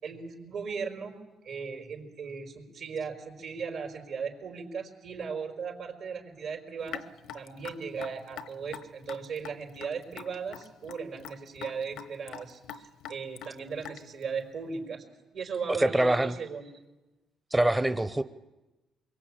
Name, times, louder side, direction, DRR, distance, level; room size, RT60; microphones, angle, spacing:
voice 1, 0.0-1.1 1.4-7.0 7.3-15.0 15.3-16.7, right 5 dB, 70° right, 4 dB, 4.9 m, -37 dB
Raindrop / Drip, 6.9-14.2, left 8 dB, 90° left, 1.0 m, -43 dB
voice 2, 15.7-16.3 17.5-18.2, right 1 dB, 15° right, 11 dB, 0.8 m, -24 dB
24.5 x 22.5 x 8.8 m, 1.1 s
cardioid pair, 90°, 0 cm